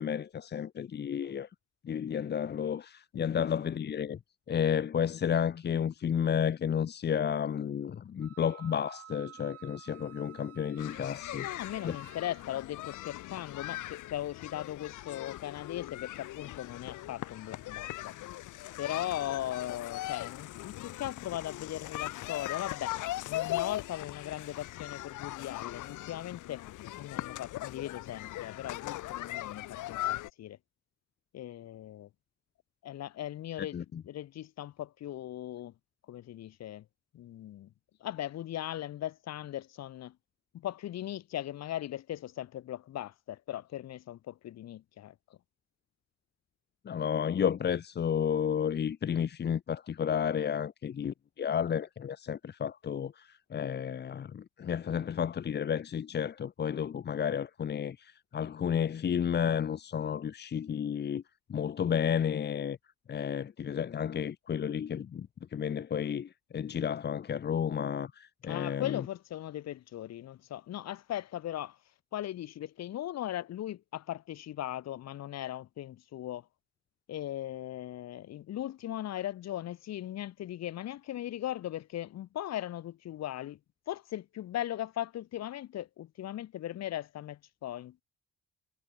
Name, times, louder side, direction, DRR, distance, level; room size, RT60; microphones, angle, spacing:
voice 1, 0.0-1.5 1.8-4.2 4.5-11.5 11.8-12.0 33.7-34.0 46.8-61.2 61.5-62.8 63.1-69.0, left 8 dB, 35° left, 2.6 m, -32 dB
Wind instrument woodwind instrument, 8.2-12.5, right 11 dB, 50° right, 5.6 m, -53 dB
sound 1, 10.8-30.3, left 16 dB, 75° left, 3.8 m, -40 dB
voice 2, 11.3-18.2 18.8-23.0 23.3-26.7 27.0-30.6 31.3-32.1 32.8-33.8 34.0-35.7 36.1-36.8 37.1-37.7 38.0-40.2 40.5-45.4 68.4-71.8 72.1-76.5 77.1-83.6 83.9-88.0, left 12 dB, 55° left, 7.7 m, -38 dB
cardioid pair, 180°, 31 cm